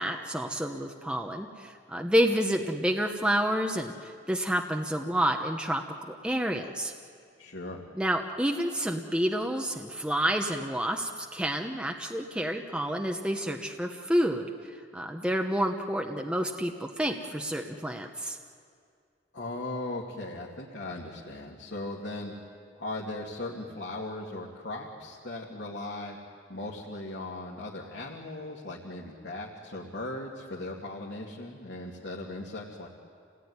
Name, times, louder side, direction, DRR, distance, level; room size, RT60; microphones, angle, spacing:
voice 1, 0.0-6.9 8.0-18.4, equal, 5° right, 3 dB, 1.0 m, -29 dB
voice 2, 7.4-7.8 19.3-22.3 22.8-26.2 26.5-32.9, left 2 dB, 80° left, -4 dB, 2.6 m, -38 dB
29.0 x 19.0 x 9.8 m, 2.2 s
head